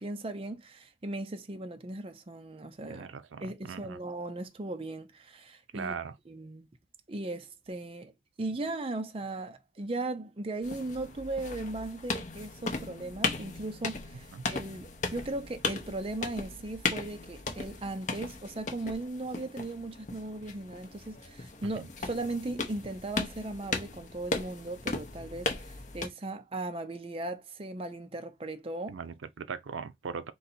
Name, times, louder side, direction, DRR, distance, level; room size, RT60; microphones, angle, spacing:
voice 1, 0.0-3.1 3.4-5.9 6.3-6.7 7.1-8.1 8.4-29.0, right 2 dB, 30° right, 0.5 m, -37 dB
voice 2, 2.9-3.4 3.7-4.0 5.7-6.1 14.3-14.4 21.6-21.9 28.9-30.3, right 6 dB, 90° right, 0.5 m, -39 dB
sound 1, 10.6-26.1, left 3 dB, 40° left, 0.7 m, -37 dB
3.9 x 2.6 x 4.1 m
head